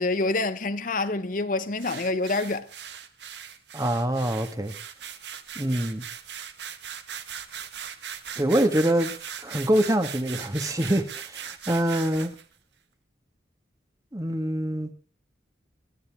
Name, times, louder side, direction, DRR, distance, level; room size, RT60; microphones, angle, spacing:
voice 1, 0.0-2.7, left 2 dB, 45° left, 0.9 m, -27 dB
sound 1, 1.8-12.4, right 8 dB, 70° right, 1.6 m, -39 dB
voice 2, 3.7-4.7 5.5-6.0 8.4-9.1 9.4-12.3 14.1-14.9, right 1 dB, 20° right, 1.7 m, -25 dB
22.0 x 13.0 x 3.6 m
head